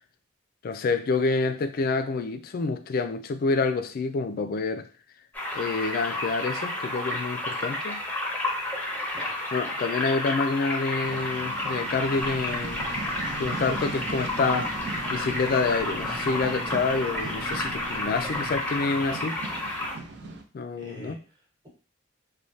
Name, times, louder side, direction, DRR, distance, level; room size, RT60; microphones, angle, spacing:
voice 1, 0.6-4.9 5.5-8.0 9.5-12.8 13.4-14.7 15.1-19.4 20.2-21.2, left 4 dB, 50° left, 0.3 m, -27 dB
sound 1, 5.3-20.0, left 1 dB, 10° left, 0.7 m, -31 dB
sound 2, 11.0-20.4, right 3 dB, 60° right, 0.5 m, -40 dB
sound 3, 12.2-18.6, equal, 90° right, 0.8 m, -42 dB
voice 2, 20.7-21.7, right 1 dB, 25° right, 1.0 m, -46 dB
3.2 x 2.2 x 2.6 m
head